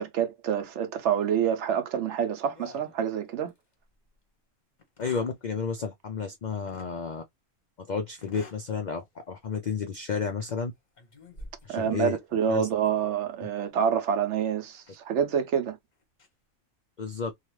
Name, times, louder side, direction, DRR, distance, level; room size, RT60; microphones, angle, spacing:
voice 1, 0.0-3.5 11.7-15.8, right 8 dB, 65° right, 0.9 m, -27 dB
sound 1, 2.5-3.6 4.1-4.2 4.8-5.3 6.7-6.9 8.2-8.7 9.2-9.3 10.2-10.6 11.0-13.3 14.7-15.0 15.9-16.3, left 2 dB, 40° left, 0.8 m, -50 dB
voice 2, 5.0-7.2 7.8-10.7 11.6-12.2 12.5-12.7 17.0-17.3, left 5 dB, 85° left, 0.4 m, -31 dB
2.9 x 2.3 x 3.0 m
omnidirectional pair, 1.4 m